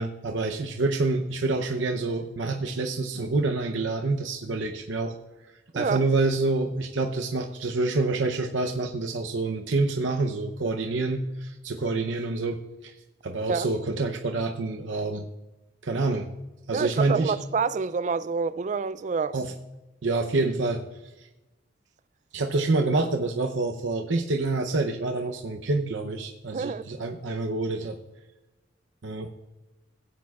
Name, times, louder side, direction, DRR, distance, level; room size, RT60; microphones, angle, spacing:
voice 1, 0.0-5.1 5.7-12.9 13.2-15.3 15.8-16.3 16.7-17.3 19.3-19.5 20.0-20.8 21.2-21.3 22.3-28.0 29.0-29.3, right 3 dB, 80° right, 0.7 m, -27 dB
voice 2, 16.7-19.4 26.5-26.8, right 5 dB, 40° right, 0.3 m, -27 dB
16.5 x 8.6 x 2.4 m
head